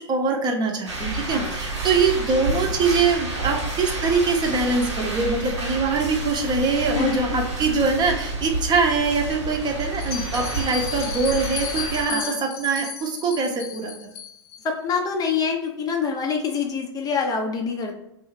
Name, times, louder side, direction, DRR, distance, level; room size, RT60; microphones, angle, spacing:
voice 1, 0.1-14.1, right 4 dB, 30° right, 2 dB, 0.6 m, -23 dB
sound 1, 0.9-12.0, right 2 dB, 85° right, 0.9 m, -30 dB
voice 2, 6.9-7.4 12.1-12.4 14.6-18.0, left 5 dB, 25° left, 2 dB, 0.4 m, -26 dB
Bell, 9.9-14.6, left 8 dB, 60° left, 0.6 m, -34 dB
2.7 x 2.3 x 3.0 m, 0.84 s
hypercardioid pair, 100°, 15 cm